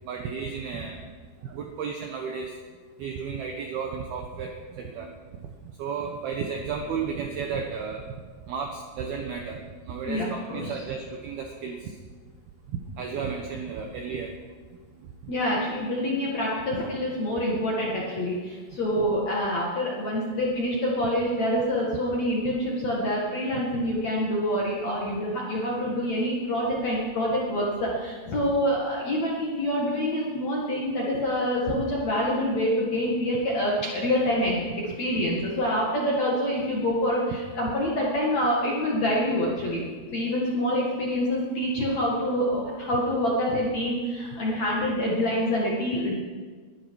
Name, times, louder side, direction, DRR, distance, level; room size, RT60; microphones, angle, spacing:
voice 1, 0.1-1.0 1.4-2.6 3.0-5.1 5.8-8.0 8.5-12.0 12.7-14.4 15.2-15.3 23.5-23.6 31.7-31.8, right 6 dB, 75° right, 2 dB, 2.3 m, -33 dB
voice 2, 10.1-10.7 15.3-39.8 40.1-46.1, equal, 50° left, -4 dB, 2.2 m, -26 dB
21.0 x 12.5 x 4.8 m, 1.5 s
omnidirectional pair, 5.9 m